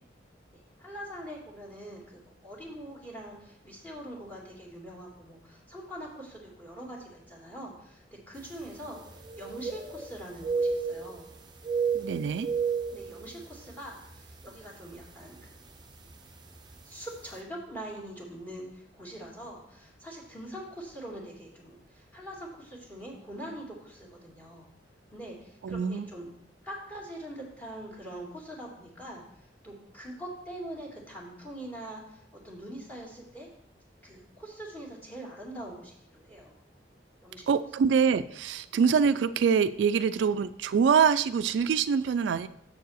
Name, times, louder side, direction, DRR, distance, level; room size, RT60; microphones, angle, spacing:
voice 1, 0.5-11.3 12.9-15.7 16.8-24.7 25.1-26.3 26.6-33.5 34.0-36.6 37.2-37.5, right 1 dB, 10° left, -2 dB, 2.2 m, -43 dB
sound 1, 8.4-8.5 8.8-10.1 10.4-11.3 11.6-13.7 14.1-14.3 14.9-15.2 16.3-16.4 16.7-16.8, right 5 dB, 25° right, 0.7 m, -31 dB
voice 2, 11.9-12.5 25.6-26.1 37.5-42.5, right 6 dB, 75° right, 12 dB, 0.3 m, -25 dB
7.2 x 4.7 x 6.4 m, 0.72 s
head